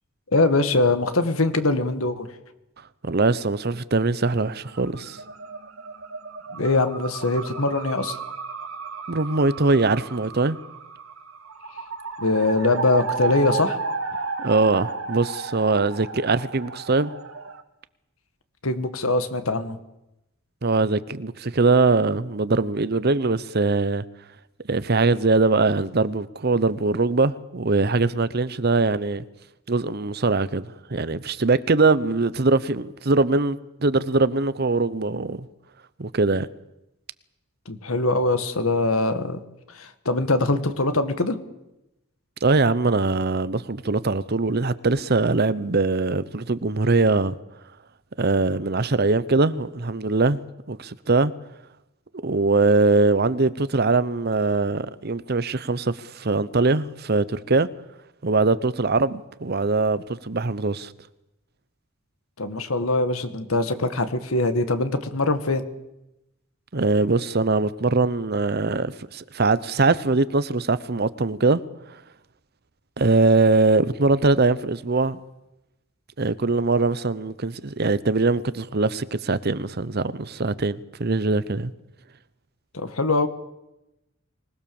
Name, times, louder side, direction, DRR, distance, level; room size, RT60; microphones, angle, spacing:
voice 1, 0.3-2.3 6.5-8.2 12.2-13.8 18.6-19.8 37.7-39.4 39.7-41.4 62.4-65.6 82.7-83.3, left 2 dB, 90° left, 1.9 m, -22 dB
voice 2, 3.0-5.2 9.1-10.6 14.4-17.1 20.6-24.0 24.7-29.2 29.7-35.5 36.0-36.5 42.4-47.3 48.2-50.4 50.7-51.3 52.2-57.7 58.2-60.9 66.7-71.6 73.0-75.2 76.2-81.7, right 3 dB, 50° right, 0.8 m, -22 dB
sound 1, 4.4-17.6, right 4 dB, 80° right, 1.8 m, -33 dB
25.0 x 19.5 x 7.1 m
head